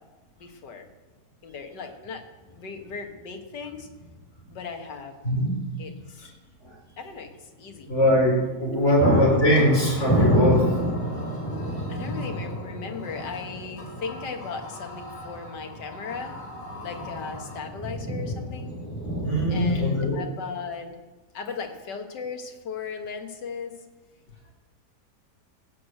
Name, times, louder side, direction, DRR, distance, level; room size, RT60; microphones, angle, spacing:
voice 1, 0.4-0.9 1.4-2.2 2.5-3.9 4.5-5.3 5.8-6.2 7.0-7.9 8.8-8.9 11.9-16.4 16.8-18.7 19.5-21.0 21.3-23.8, left 5 dB, 85° left, 5 dB, 2.0 m, -37 dB
sound 1, 2.1-2.2 3.7-4.2 4.4-4.5 8.2-8.4 8.7-20.1, equal, 10° left, 4.5 m, -29 dB
voice 2, 7.9-10.7 19.2-20.1, equal, 40° left, -2 dB, 4.4 m, -21 dB
sound 2, 9.0-17.6, left 1 dB, 70° left, 3.3 m, -43 dB
16.5 x 6.4 x 7.7 m, 1.2 s
omnidirectional pair, 1.8 m